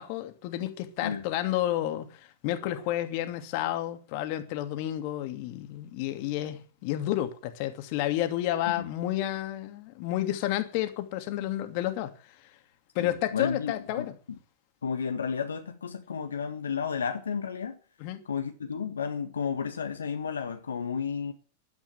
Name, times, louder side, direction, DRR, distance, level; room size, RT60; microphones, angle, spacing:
voice 1, 0.0-12.5 12.9-14.1 18.0-18.2, left 13 dB, 55° left, 2.7 m, -31 dB
voice 2, 13.0-14.4 14.8-17.8 18.3-21.3, left 6 dB, 85° left, 1.7 m, -32 dB
11.5 x 10.5 x 9.6 m
hypercardioid pair, 100°, 0 cm